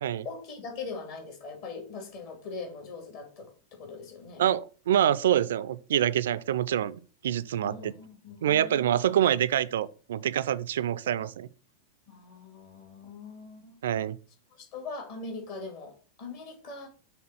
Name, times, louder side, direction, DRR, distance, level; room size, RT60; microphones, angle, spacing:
voice 1, 0.2-4.5 7.6-9.0 12.1-13.8 14.5-16.9, left 4 dB, 50° left, 2.4 m, -41 dB
voice 2, 4.4-7.9 8.4-11.5 13.8-14.2, right 10 dB, 60° right, 0.4 m, -26 dB
6.3 x 3.4 x 5.9 m
figure-of-eight pair, 90°, 0 cm